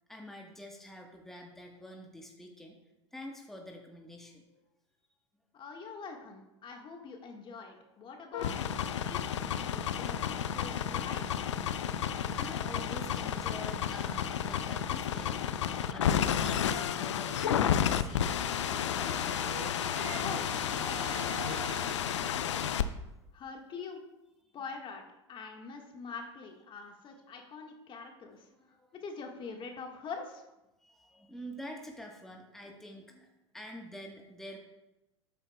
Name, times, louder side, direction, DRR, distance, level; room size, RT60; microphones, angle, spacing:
voice 1, 0.1-2.8 3.1-4.6 12.4-19.3 28.5-28.9 30.8-34.6, equal, ahead, 1 dB, 1.3 m, -47 dB
voice 2, 5.5-11.4 20.2-22.7 23.3-24.0 24.5-25.0 25.3-30.4, left 4 dB, 35° left, 2 dB, 1.6 m, -45 dB
sound 1, 8.3-22.8, left 9 dB, 75° left, 0.6 m, -32 dB
sound 2, 18.5-22.3, right 17 dB, 55° right, 0.4 m, -45 dB
12.5 x 8.4 x 2.3 m, 0.95 s
hypercardioid pair, 85°, 15 cm